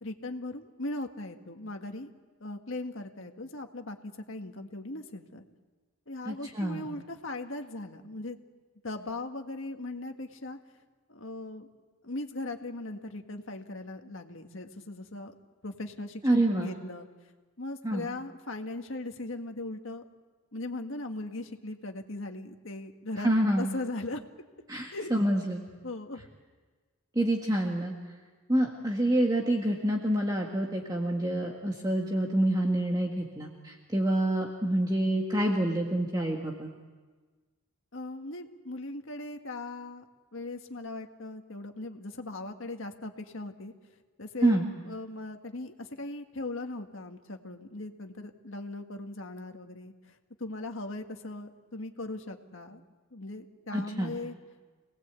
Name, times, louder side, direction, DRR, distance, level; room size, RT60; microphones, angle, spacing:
voice 1, 0.0-2.1 2.4-5.4 6.1-8.4 8.8-10.6 11.1-11.7 12.0-15.3 15.6-17.1 17.6-20.0 20.5-23.3 23.6-24.2 24.9-25.1 25.8-26.3 37.9-40.0 40.3-43.7 44.2-52.8 53.1-54.3, left 2 dB, 60° left, 4 dB, 1.8 m, -39 dB
voice 2, 6.3-6.9 16.2-16.7 17.8-18.1 23.2-23.7 24.7-25.6 27.2-27.9 28.5-36.7 44.4-44.7 53.7-54.1, right 1 dB, 15° right, -1 dB, 1.8 m, -27 dB
27.0 x 19.0 x 8.3 m, 1.4 s
head